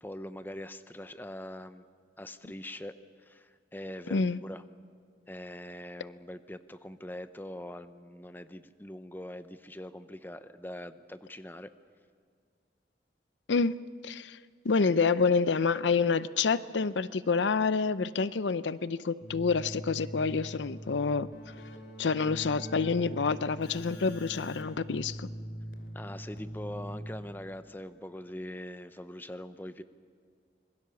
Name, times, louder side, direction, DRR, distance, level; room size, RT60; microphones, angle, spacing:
voice 1, 0.0-1.8 2.2-2.9 3.2-4.6 5.3-11.7 25.9-29.8, left 1 dB, 10° left, 11 dB, 0.7 m, -43 dB
voice 2, 14.0-14.4 14.6-21.3 22.0-25.3, left 4 dB, 90° left, 16 dB, 0.6 m, -28 dB
Keyboard (musical), 19.2-27.6, equal, 65° left, 2.7 m, -42 dB
26.0 x 21.5 x 7.0 m, 2.2 s
head